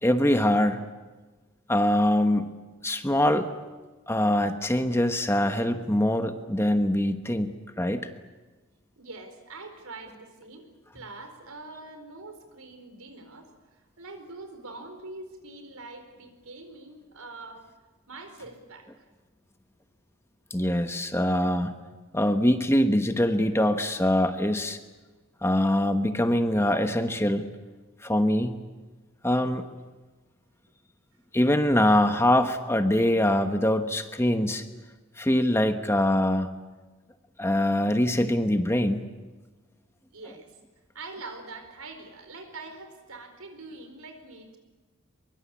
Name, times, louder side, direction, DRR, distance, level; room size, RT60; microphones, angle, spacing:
voice 1, 0.0-0.8 1.7-2.5 2.8-3.5 4.1-8.1 20.5-21.8 22.1-24.8 25.4-27.5 28.0-28.6 29.2-29.6 31.3-34.6 35.2-36.5 37.4-39.1, left 1 dB, 10° left, 7 dB, 1.2 m, -23 dB
voice 2, 9.0-10.7 10.9-17.7 18.1-18.9 40.1-40.5 40.9-44.6, right 3 dB, 80° right, 7 dB, 4.5 m, -44 dB
23.5 x 22.5 x 8.5 m, 1.3 s
head